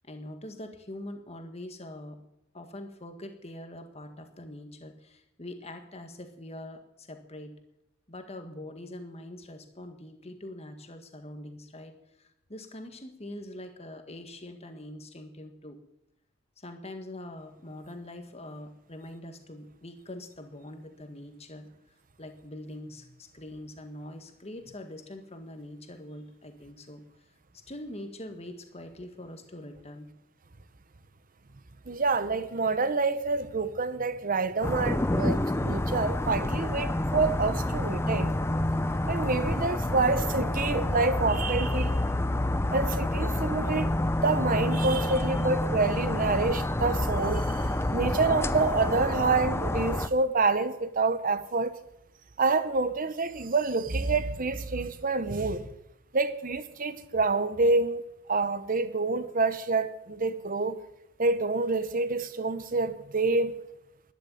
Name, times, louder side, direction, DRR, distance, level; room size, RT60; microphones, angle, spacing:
voice 1, 0.0-2.2 2.5-7.6 8.1-11.9 12.2-15.8 16.6-21.7 22.2-27.0 27.7-30.1, left 1 dB, 30° left, 1.7 m, -43 dB
voice 2, 31.9-38.3 39.1-42.0 42.7-43.9 44.2-51.7 52.4-55.7 56.1-58.0 58.3-60.8 61.2-63.5, right 3 dB, 40° right, 0.9 m, -27 dB
sound 1, 34.6-50.1, left 1 dB, 10° left, 0.6 m, -28 dB
12.0 x 10.0 x 9.3 m
head